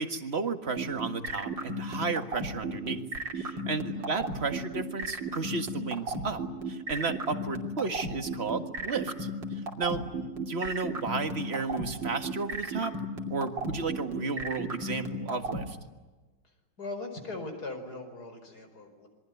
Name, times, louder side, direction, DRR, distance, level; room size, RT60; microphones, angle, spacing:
voice 1, 0.0-3.0 3.3-10.0 10.3-12.9 13.3-15.8, right 4 dB, 35° right, 8 dB, 1.9 m, -33 dB
sound 1, 0.8-15.6, right 2 dB, 80° right, 3.6 m, -33 dB
voice 2, 3.9-4.3 10.0-10.3 16.4-19.1, left 2 dB, 55° left, 6 dB, 5.5 m, -41 dB
27.5 x 23.0 x 9.4 m, 1.2 s
omnidirectional pair, 2.0 m